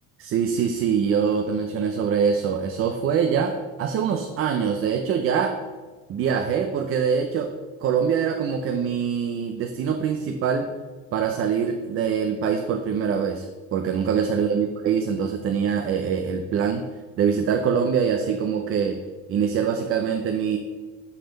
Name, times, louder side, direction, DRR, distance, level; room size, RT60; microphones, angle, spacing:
voice 1, 0.2-5.6 6.1-7.5 7.8-10.7 11.1-16.8 17.2-19.0 19.3-20.6, right 7 dB, 40° right, 5 dB, 0.7 m, -24 dB
11.5 x 4.2 x 6.7 m, 1.4 s
cardioid pair, 160°, 33 cm